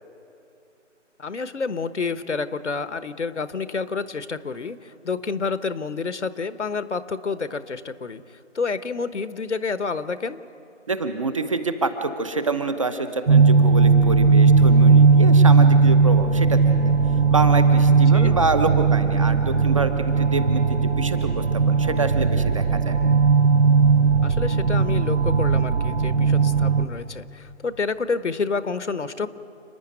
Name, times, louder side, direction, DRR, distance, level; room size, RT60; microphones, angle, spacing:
voice 1, 1.2-8.2 8.5-10.4 18.1-18.4 24.2-29.3, left 4 dB, 65° left, 13 dB, 1.2 m, -29 dB
voice 2, 10.9-16.6 17.3-23.0, right 3 dB, 25° right, 9 dB, 0.9 m, -26 dB
sound 1, 13.3-26.9, right 5 dB, 60° right, 1.3 m, -17 dB
29.5 x 9.9 x 9.8 m, 2.7 s
figure-of-eight pair, 160°, 37 cm